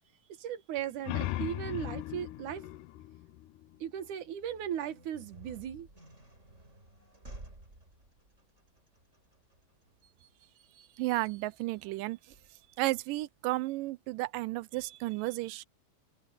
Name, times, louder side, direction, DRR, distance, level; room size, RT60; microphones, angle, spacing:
voice 1, 0.4-2.7 3.8-5.9, right 10 dB, 65° right, 2.8 m, -37 dB
sound 1, 0.8-4.2, left 15 dB, 75° left, 2.1 m, -38 dB
sound 2, 4.3-13.0, right 2 dB, 20° right, 5.8 m, -54 dB
voice 2, 11.0-12.2 12.8-15.6, right 19 dB, 85° right, 2.2 m, -33 dB
omnidirectional pair, 3.9 m